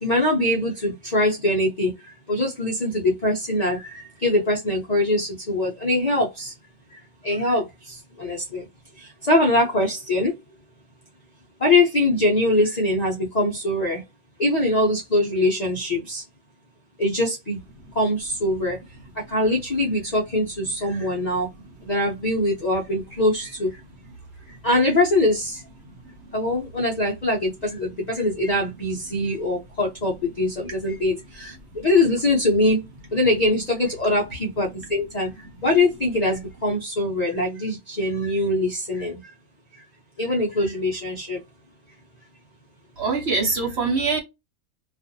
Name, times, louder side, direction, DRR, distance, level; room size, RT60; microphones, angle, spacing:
voice 1, 0.0-6.5 6.9-7.0 7.2-8.7 9.0-10.3 11.6-14.0 14.4-16.2 17.0-17.6 18.0-18.8 19.3-21.5 21.8-23.7 24.6-25.6 26.3-32.8 33.1-35.3 35.6-39.3 40.2-41.4, left 2 dB, 50° left, 0.5 m, -23 dB
voice 2, 43.0-44.2, right 4 dB, 55° right, 0.9 m, -23 dB
2.5 x 2.4 x 2.6 m
omnidirectional pair, 1.5 m